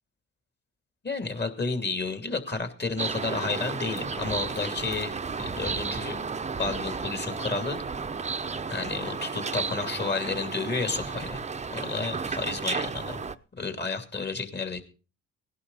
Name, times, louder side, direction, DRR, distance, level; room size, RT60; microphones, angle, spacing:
voice 1, 1.0-5.1 5.4-6.2 6.6-7.8 8.7-13.2 13.6-14.8, left 4 dB, 35° left, 7 dB, 2.8 m, -31 dB
sound 1, 3.0-13.4, right 5 dB, 25° right, 0.7 m, -33 dB
17.5 x 11.5 x 4.1 m, 0.35 s
cardioid pair, 90°, 30 cm